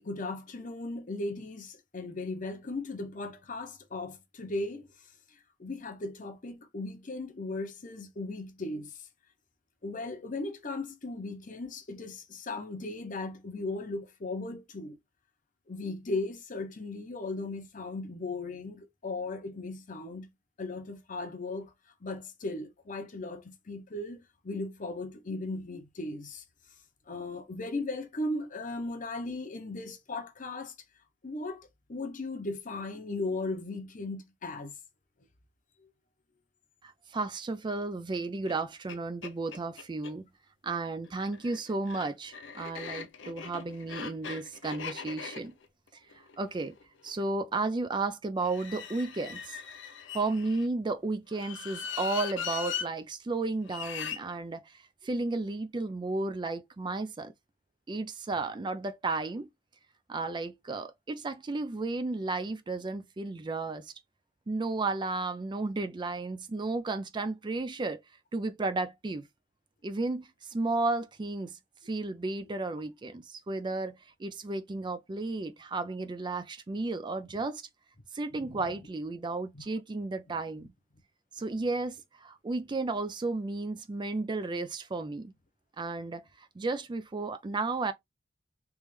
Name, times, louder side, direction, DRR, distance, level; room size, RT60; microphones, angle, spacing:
voice 1, 0.0-4.9 5.6-8.9 9.8-15.0 15.7-20.3 20.6-21.7 22.0-26.4 27.1-30.7 31.2-34.7 78.3-78.6 79.5-79.6, left 2 dB, 45° left, 0.8 m, -37 dB
voice 2, 36.8-40.3 40.6-45.5 46.4-46.8 47.0-49.6 50.1-57.3 57.9-59.5 60.1-63.9 64.5-68.0 68.3-69.2 69.8-71.6 71.9-77.6 78.1-80.7 81.4-85.3 85.8-87.9, right 3 dB, 25° right, 0.4 m, -33 dB
sound 1, 38.5-38.6 38.9-39.0 39.2-40.1 41.1-47.2 48.4-50.7 51.3-52.9 53.7-54.2, left 7 dB, 70° left, 0.6 m, -40 dB
3.4 x 3.1 x 3.2 m
head